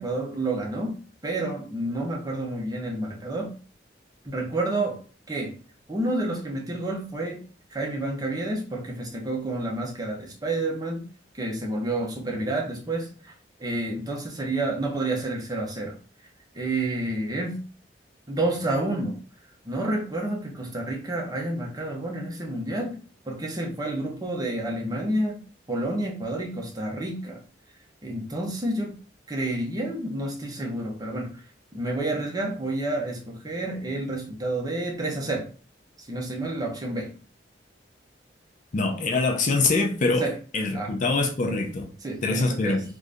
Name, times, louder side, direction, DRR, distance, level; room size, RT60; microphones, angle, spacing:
voice 1, 0.0-3.5 4.2-5.0 5.3-5.5 5.9-7.4 7.7-11.0 11.4-13.3 13.6-15.9 16.5-17.6 18.3-19.2 19.7-23.0 23.2-25.4 25.7-27.4 28.0-29.0 29.3-31.3 31.7-35.5 36.1-37.1 40.2-40.3 40.7-40.9 42.0-42.8, right 2 dB, 20° right, 0.8 m, -29 dB
voice 2, 38.7-40.3 40.5-41.9 42.2-42.8, left 3 dB, 45° left, 0.5 m, -24 dB
2.7 x 2.5 x 3.4 m
head